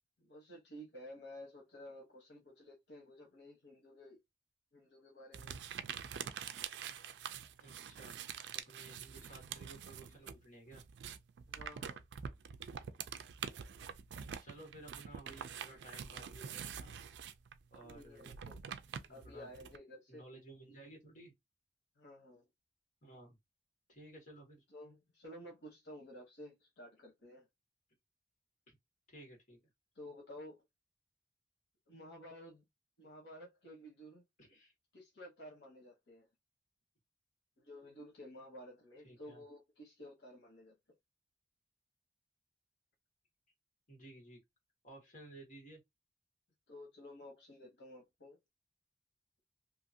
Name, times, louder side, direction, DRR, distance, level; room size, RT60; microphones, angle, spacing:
voice 1, 0.2-4.2 4.7-5.6 11.5-12.0 17.8-18.6 19.1-20.3 22.0-22.5 24.7-27.5 29.9-30.6 31.9-32.6 33.0-34.2 34.9-36.3 37.6-40.8 46.7-48.4, left 1 dB, 80° left, 1.0 m, -53 dB
sound 1, 5.3-10.4 10.7-19.8, right 8 dB, 80° right, 0.4 m, -46 dB
voice 2, 7.6-8.2 8.5-10.8 14.4-16.9 17.7-18.3 19.1-19.5 20.1-21.3 23.0-23.4 23.9-24.6 28.7-28.8 29.1-29.6 34.4-34.7 39.0-39.4 43.9-44.4 44.8-45.8, right 1 dB, 50° left, 1.5 m, -55 dB
2.8 x 2.5 x 2.7 m
head